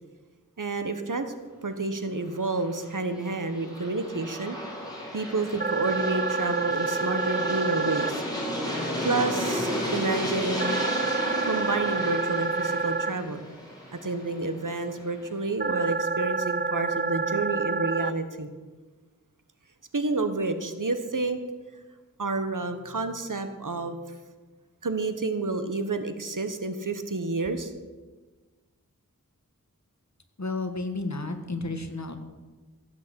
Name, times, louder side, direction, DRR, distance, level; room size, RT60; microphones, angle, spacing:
voice 1, 0.6-1.3 1.6-4.6 5.1-8.2 9.0-10.8 11.4-13.4 14.0-18.5 19.9-21.4 22.2-23.9 24.8-27.7, right 3 dB, 65° right, 9 dB, 1.3 m, -29 dB
Aircraft, 2.4-15.2, equal, 10° left, 4.4 m, -33 dB
sound 1, 5.6-8.1 10.6-13.1 15.6-18.1, right 4 dB, 30° right, 0.6 m, -28 dB
voice 2, 30.4-32.2, left 2 dB, 55° left, 6 dB, 1.5 m, -32 dB
15.5 x 6.4 x 8.0 m, 1.3 s
wide cardioid pair, 55°, 34 cm